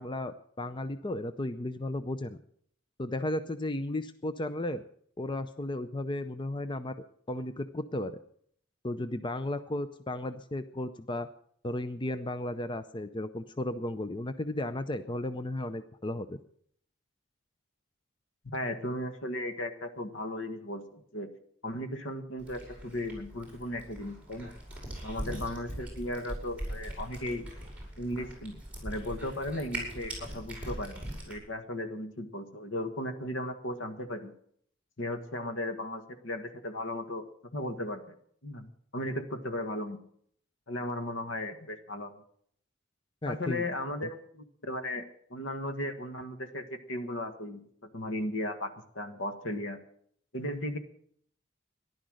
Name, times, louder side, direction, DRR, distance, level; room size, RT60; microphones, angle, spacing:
voice 1, 0.0-2.4 3.0-4.8 5.2-6.9 7.3-8.2 8.8-11.3 11.6-16.4 25.3-25.4 43.2-43.6, left 1 dB, 25° left, 11 dB, 0.5 m, -34 dB
voice 2, 18.5-21.3 21.6-24.5 25.0-27.4 28.0-34.3 35.0-37.2 37.5-38.1 38.4-40.0 40.7-42.1 43.2-45.0 45.3-47.6 47.9-49.8 50.3-50.8, left 1 dB, 70° left, 8 dB, 1.7 m, -36 dB
Cat, 22.4-31.4, right 1 dB, 5° right, 5.7 m, -41 dB
14.5 x 11.5 x 6.4 m, 0.63 s
head